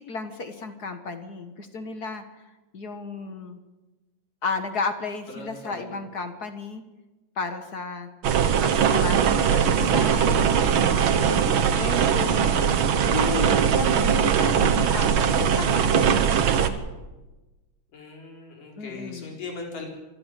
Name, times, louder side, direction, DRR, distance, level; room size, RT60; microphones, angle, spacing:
voice 1, 0.1-2.2 2.7-3.6 4.4-6.8 7.4-8.1 8.6-10.5 10.9-12.6 13.1-16.8 18.8-19.3, left 4 dB, 50° left, 8 dB, 1.2 m, -33 dB
voice 2, 5.3-6.0 13.5-13.8 17.9-19.9, left 3 dB, 85° left, 1 dB, 6.1 m, -39 dB
sound 1, 8.2-16.7, right 7 dB, 60° right, 1.4 m, -21 dB
26.0 x 12.0 x 10.0 m, 1.1 s
omnidirectional pair, 3.7 m